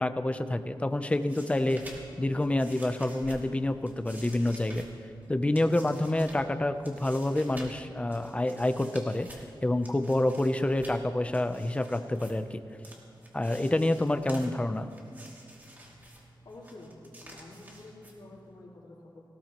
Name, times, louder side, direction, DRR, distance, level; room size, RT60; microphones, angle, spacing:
voice 1, 0.0-4.9 5.3-9.3 9.6-12.6 13.3-14.9, left 1 dB, 15° left, 9 dB, 0.6 m, -28 dB
sound 1, 0.9-18.6, right 1 dB, 20° right, 2.5 m, -50 dB
voice 2, 16.4-19.2, left 2 dB, 90° left, -10 dB, 3.6 m, -49 dB
19.0 x 17.0 x 3.0 m, 2.5 s
wide cardioid pair, 130°, 8 cm